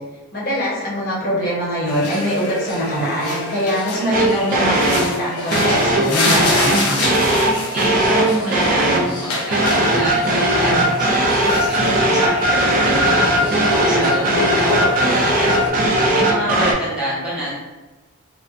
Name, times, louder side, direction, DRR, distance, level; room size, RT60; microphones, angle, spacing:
voice 1, 0.3-7.1, equal, 45° left, -6 dB, 0.8 m, -23 dB
sound 1, 1.9-15.7, left 2 dB, 80° left, 0.5 m, -26 dB
sound 2, 4.1-5.1 5.5-9.1 9.5-16.7, right 1 dB, 40° right, 0.3 m, -18 dB
voice 2, 7.7-12.4 12.8-15.5 16.1-17.5, equal, 5° right, -10 dB, 0.8 m, -27 dB
2.5 x 2.1 x 2.4 m, 1.1 s
head